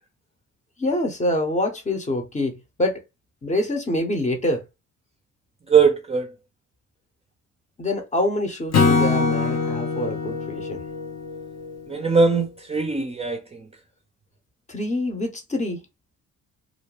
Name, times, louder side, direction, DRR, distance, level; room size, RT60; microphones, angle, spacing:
voice 1, 0.8-3.0 3.4-4.6 7.8-10.8 14.7-15.8, left 1 dB, 25° left, 0.8 m, -26 dB
voice 2, 5.7-6.3 11.9-13.4, right 5 dB, 20° right, 0.5 m, -20 dB
Acoustic guitar / Strum, 8.7-12.1, left 4 dB, 55° left, 0.8 m, -23 dB
2.5 x 2.1 x 3.1 m
cardioid pair, 90°, 30 cm